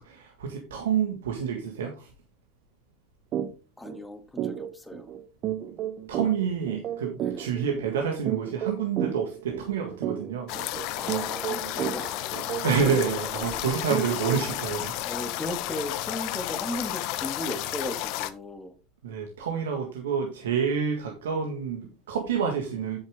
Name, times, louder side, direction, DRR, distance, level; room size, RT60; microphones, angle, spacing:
voice 1, 0.0-2.1 6.1-10.7 12.6-15.1 19.0-23.0, right 6 dB, 85° right, 2 dB, 1.8 m, -28 dB
sound 1, 3.3-3.5 3.8-4.0 4.4-14.6, right 11 dB, 50° right, 1.0 m, -33 dB
voice 2, 3.8-5.1 7.2-7.5 11.0-12.2 13.1-13.8 15.0-18.8, left 1 dB, 10° left, 6 dB, 2.2 m, -37 dB
sound 2, 10.5-18.3, left 14 dB, 65° left, 1.0 m, -32 dB
9.0 x 7.3 x 3.6 m, 0.33 s
hypercardioid pair, 90°, 0 cm